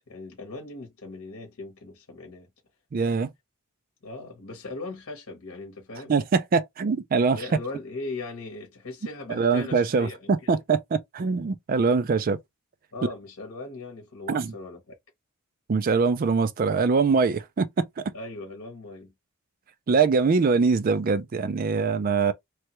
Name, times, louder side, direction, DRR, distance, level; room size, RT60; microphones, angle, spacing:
voice 1, 0.1-2.5 4.0-6.1 7.3-10.6 12.9-15.0 18.1-19.1, left 3 dB, 65° left, 1.0 m, -39 dB
voice 2, 2.9-3.3 6.1-7.4 9.3-12.4 14.3-14.5 15.7-18.0 19.9-22.3, right 4 dB, 40° right, 0.3 m, -23 dB
3.1 x 2.2 x 2.9 m
head